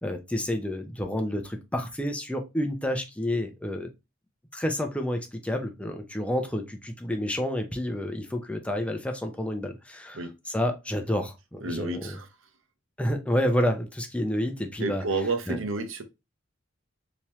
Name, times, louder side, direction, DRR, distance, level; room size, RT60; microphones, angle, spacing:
voice 1, 0.0-3.9 4.5-12.2 13.0-15.0 15.5-15.6, left 1 dB, 5° left, 0.6 m, -29 dB
voice 2, 11.6-12.3 14.8-16.0, right 3 dB, 80° right, 0.8 m, -30 dB
3.4 x 2.9 x 2.9 m
head